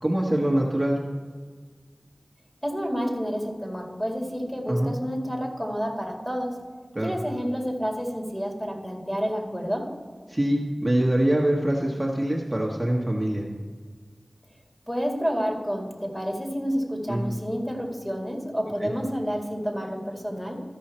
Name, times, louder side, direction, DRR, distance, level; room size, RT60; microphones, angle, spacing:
voice 1, 0.0-1.0 4.7-4.9 6.9-7.1 10.3-13.4 17.1-17.2 18.8-18.9, right 1 dB, 20° right, -3 dB, 1.3 m, -24 dB
voice 2, 2.6-6.6 7.0-9.9 14.9-20.6, equal, 10° left, 0 dB, 2.1 m, -29 dB
14.0 x 5.5 x 4.4 m, 1.5 s
wide cardioid pair, 45°, 0 cm